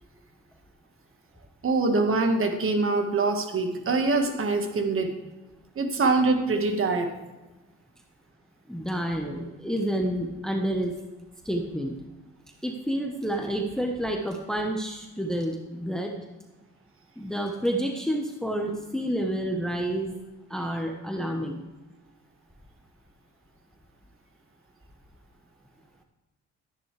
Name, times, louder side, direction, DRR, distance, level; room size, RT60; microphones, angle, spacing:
voice 1, 1.6-5.2 5.8-7.1, right 3 dB, 45° right, 5 dB, 1.8 m, -24 dB
voice 2, 8.7-10.9 11.4-11.9 12.6-16.1 17.2-20.2 20.5-21.7, right 1 dB, ahead, 3 dB, 1.1 m, -29 dB
13.5 x 10.0 x 3.4 m, 1.1 s
cardioid pair, 90°, 30 cm